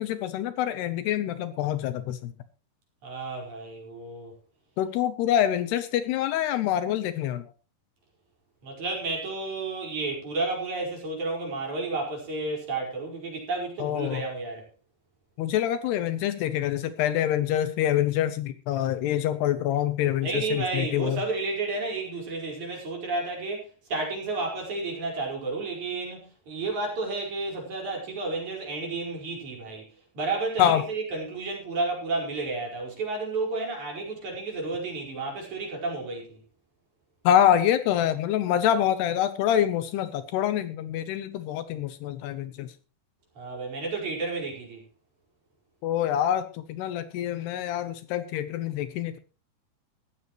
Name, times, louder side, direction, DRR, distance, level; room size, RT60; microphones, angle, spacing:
voice 1, 0.0-2.3 4.8-7.4 13.8-14.2 15.4-21.2 30.6-30.8 37.2-42.7 45.8-49.2, left 11 dB, 75° left, 2.8 m, -26 dB
voice 2, 3.0-4.3 8.6-14.6 20.2-23.6 23.9-29.9 30.1-36.4 43.4-44.8, right 3 dB, 45° right, 6.3 m, -31 dB
17.0 x 14.0 x 3.1 m
omnidirectional pair, 5.0 m